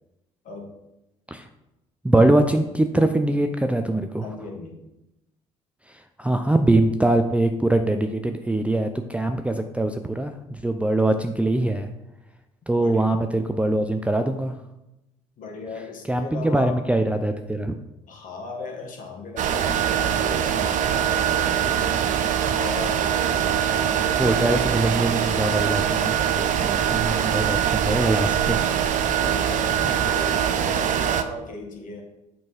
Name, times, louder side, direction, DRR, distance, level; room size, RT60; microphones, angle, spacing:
voice 1, 2.0-4.3 6.2-11.9 12.7-14.5 16.1-17.7 24.2-28.6, right 1 dB, 5° right, 6 dB, 0.5 m, -22 dB
voice 2, 4.2-4.8 12.8-13.2 15.4-16.8 18.1-22.0 22.4-24.9 29.1-32.0, left 3 dB, 50° left, 2 dB, 1.7 m, -37 dB
sound 1, 19.4-31.2, right 9 dB, 45° right, 0.6 m, -23 dB
7.1 x 4.5 x 4.4 m, 0.93 s
figure-of-eight pair, 50°, 18 cm